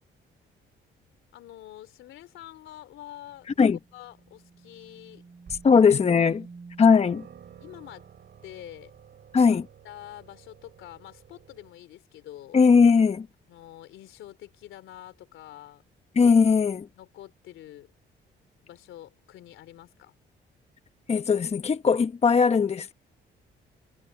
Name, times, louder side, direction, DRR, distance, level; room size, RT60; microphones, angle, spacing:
voice 1, 1.3-3.7 3.9-5.2 5.7-5.8 6.1-6.3 7.6-8.1 8.4-8.9 9.4-9.5 9.8-12.6 13.5-15.9 16.9-17.9 18.6-20.1, left 13 dB, 85° left, 3.3 m, -46 dB
sound 1, 3.3-7.1, right 4 dB, 35° right, 5.9 m, -49 dB
sound 2, 5.5-5.9 6.5-6.6 7.0-11.7, right 8 dB, 60° right, 5.2 m, -51 dB
voice 2, 5.6-6.4 6.8-7.2 9.3-9.6 12.5-13.3 16.2-16.9 21.1-22.9, left 5 dB, 30° left, 0.9 m, -19 dB
cardioid pair, 90°, 20 cm